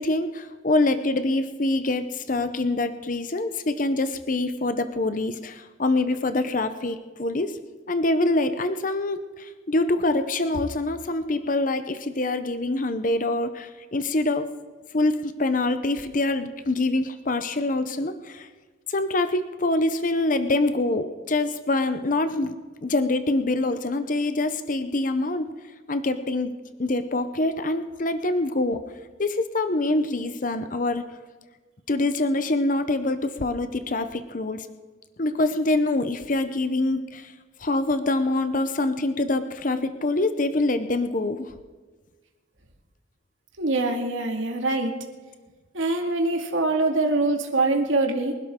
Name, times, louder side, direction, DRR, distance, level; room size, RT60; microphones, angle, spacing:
voice 1, 0.0-7.6 7.9-14.5 14.9-18.5 18.9-22.5 22.8-25.5 25.9-26.5 26.8-28.8 29.2-31.0 31.9-34.7 35.2-37.3 37.6-41.5, left 2 dB, 40° left, 10 dB, 0.8 m, -25 dB
voice 2, 43.6-44.9 45.7-48.3, right 2 dB, 75° right, 2 dB, 2.2 m, -24 dB
24.5 x 12.0 x 3.7 m, 1.4 s
head